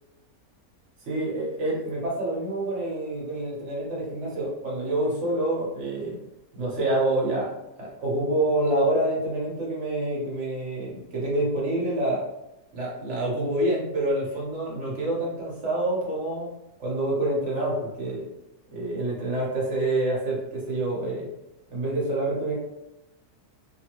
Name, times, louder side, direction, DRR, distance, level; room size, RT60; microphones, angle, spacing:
voice 1, 1.0-6.2 6.6-7.5 7.8-12.3 12.7-16.5 16.8-18.3 18.7-21.3 21.7-22.5, right 1 dB, 50° right, -5 dB, 1.3 m, -27 dB
3.1 x 2.2 x 3.0 m, 0.91 s
omnidirectional pair, 1.7 m